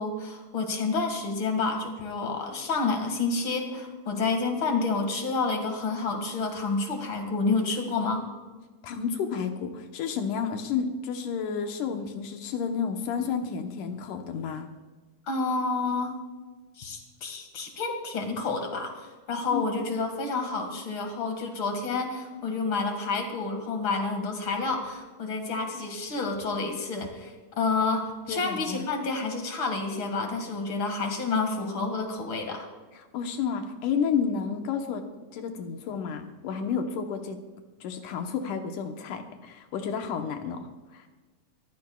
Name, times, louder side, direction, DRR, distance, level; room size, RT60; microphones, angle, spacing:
voice 1, 0.0-8.3 15.3-16.2 16.8-32.7, left 3 dB, 45° left, 4 dB, 2.3 m, -29 dB
voice 2, 8.8-14.7 19.5-19.6 28.3-28.8 32.9-35.0 35.3-37.4 37.8-41.0, left 6 dB, 80° left, 5 dB, 2.6 m, -31 dB
23.5 x 15.0 x 2.3 m, 1.3 s
omnidirectional pair, 3.6 m